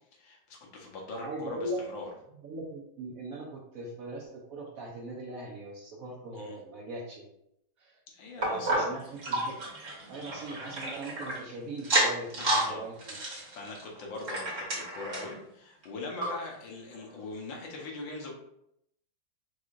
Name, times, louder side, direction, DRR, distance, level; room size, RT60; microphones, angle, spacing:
voice 1, 0.1-2.1 6.4-6.6 8.1-9.1 12.3-18.3, left 3 dB, 85° left, 0 dB, 1.7 m, -41 dB
voice 2, 1.1-1.8 2.4-7.3 7.8-8.0 8.4-9.5 10.1-13.0, right 2 dB, 70° right, -1 dB, 0.8 m, -40 dB
sound 1, 8.4-11.4 11.8-12.7 13.0-15.4 15.8-15.9 16.2-16.3 16.9-17.0, right 1 dB, 45° right, 1.4 m, -30 dB
4.8 x 3.5 x 2.4 m, 0.77 s
omnidirectional pair, 2.0 m